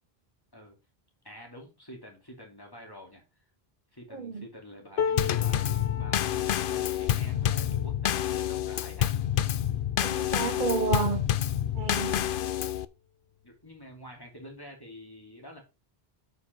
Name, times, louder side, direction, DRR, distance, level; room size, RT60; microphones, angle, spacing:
voice 1, 1.2-3.2 3.9-9.2 13.4-15.6, equal, 20° left, 2.8 m, -47 dB
voice 2, 4.1-4.5 10.0-11.2 11.7-12.3, right 4 dB, 50° right, 1.0 m, -30 dB
sound 1, 5.0-11.1 11.7-11.9 12.2-13.0 13.9-14.0, left 6 dB, 80° left, 1.1 m, -38 dB
Drum kit / Snare drum / Bass drum, 5.2-12.9, left 11 dB, 65° left, 0.7 m, -28 dB
8.2 x 5.3 x 4.5 m
omnidirectional pair, 1.0 m